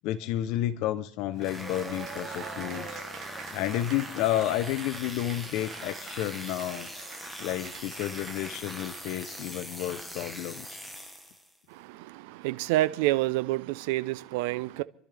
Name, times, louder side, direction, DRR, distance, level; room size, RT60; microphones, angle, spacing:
voice 1, 0.0-3.0 3.5-6.9 7.4-10.8, left 13 dB, 55° left, 13 dB, 0.7 m, -31 dB
sound 1, 1.4-11.6, equal, ahead, 1.2 m, -42 dB
Cheering / Applause, 1.4-10.9, right 8 dB, 40° right, 2.2 m, -45 dB
voice 2, 11.7-14.8, right 17 dB, 70° right, 16 dB, 0.5 m, -28 dB
29.5 x 12.0 x 3.4 m, 0.71 s
supercardioid pair, 140°, 0 cm